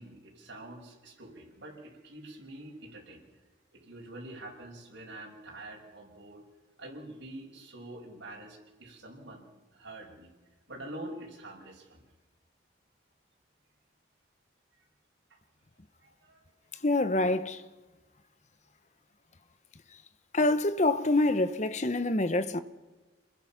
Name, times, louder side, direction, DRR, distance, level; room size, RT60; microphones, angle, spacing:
voice 1, 0.0-3.2 3.7-6.4 6.8-10.3 10.7-12.0 15.3-15.4 16.0-16.4 16.7-16.8, right 1 dB, 90° right, 6.1 m, -46 dB
voice 2, 16.8-17.6 20.3-22.6, left 2 dB, 40° left, 1.0 m, -26 dB
28.0 x 21.5 x 6.0 m
head